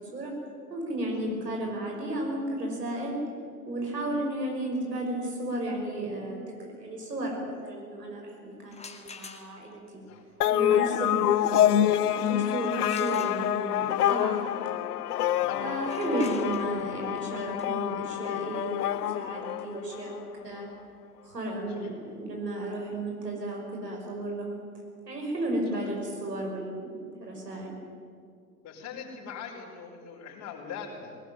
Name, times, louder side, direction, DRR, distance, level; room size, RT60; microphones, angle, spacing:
voice 1, 0.7-3.2 3.6-10.0 10.5-14.8 15.6-20.7 21.2-24.6 25.1-26.9 27.2-27.8, right 1 dB, 85° right, -1 dB, 5.8 m, -33 dB
sound 1, 8.7-9.8 12.9-13.9 15.7-21.4, left 5 dB, 15° left, 2.0 m, -48 dB
sound 2, 10.4-20.2, left 12 dB, 70° left, 0.7 m, -27 dB
voice 2, 28.6-31.2, left 6 dB, 40° left, -7 dB, 4.9 m, -42 dB
20.0 x 19.0 x 9.2 m, 2.3 s
figure-of-eight pair, 90°, 47 cm